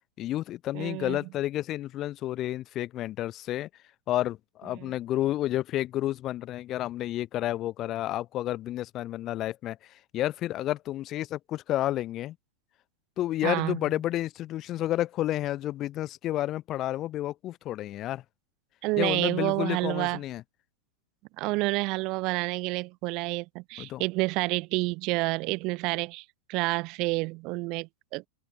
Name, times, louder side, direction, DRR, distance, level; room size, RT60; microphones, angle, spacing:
voice 1, 0.2-3.7 4.1-9.8 10.1-12.4 13.2-18.2 19.0-20.4 23.8-24.0, left 14 dB, 35° left, 0.6 m, -30 dB
voice 2, 0.7-1.2 4.8-4.9 13.4-13.8 18.8-20.2 21.4-26.2 26.5-28.3, right 24 dB, 40° right, 0.7 m, -29 dB
open air
figure-of-eight pair, 90°, 0 cm